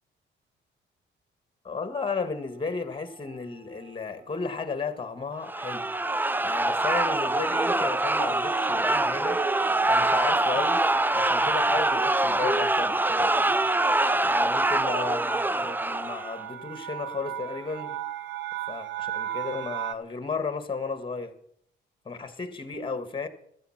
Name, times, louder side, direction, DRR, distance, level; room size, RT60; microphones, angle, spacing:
voice 1, 1.6-5.9 6.4-9.4 9.9-10.9 11.1-13.3 14.2-18.0 18.7-21.3 22.1-23.3, left 4 dB, 25° left, 10 dB, 1.9 m, -34 dB
sound 1, 1.8-2.3 3.0-3.4 3.7-19.9, right 10 dB, 70° right, 0.9 m, -40 dB
sound 2, 5.4-16.4, right 2 dB, 10° right, 0.5 m, -24 dB
15.5 x 12.5 x 6.0 m, 0.68 s
cardioid pair, 90°, 20 cm